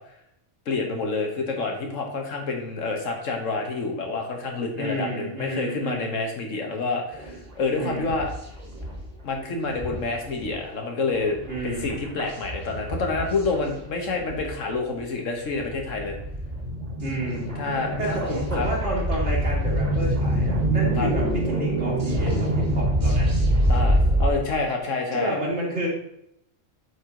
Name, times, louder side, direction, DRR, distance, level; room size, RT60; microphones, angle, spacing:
voice 1, 0.6-8.3 9.2-16.2 17.6-18.2 18.5-18.7 21.0-21.1 23.7-25.4, left 3 dB, 85° left, 2 dB, 1.6 m, -28 dB
voice 2, 4.7-6.3 7.8-8.2 11.5-12.0 17.0-17.5 18.0-23.3 25.1-25.9, right 1 dB, 65° right, -3 dB, 2.4 m, -30 dB
sound 1, 7.1-7.5 7.9-9.1 9.4-9.5 9.7-14.5 15.0-15.1 15.5-24.3, right 1 dB, 30° right, 1.6 m, -25 dB
8.1 x 4.7 x 3.8 m, 0.76 s
omnidirectional pair, 1.3 m